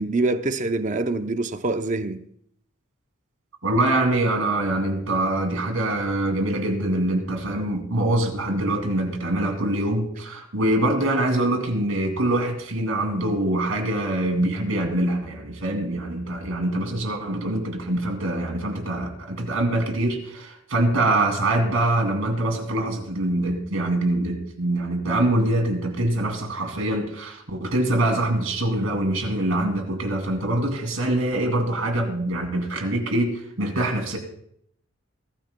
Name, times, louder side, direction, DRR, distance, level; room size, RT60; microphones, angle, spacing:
voice 1, 0.0-2.2, right 2 dB, 35° right, 0.6 m, -25 dB
voice 2, 3.6-34.2, right 1 dB, 80° right, 2.7 m, -24 dB
21.5 x 14.0 x 2.2 m
head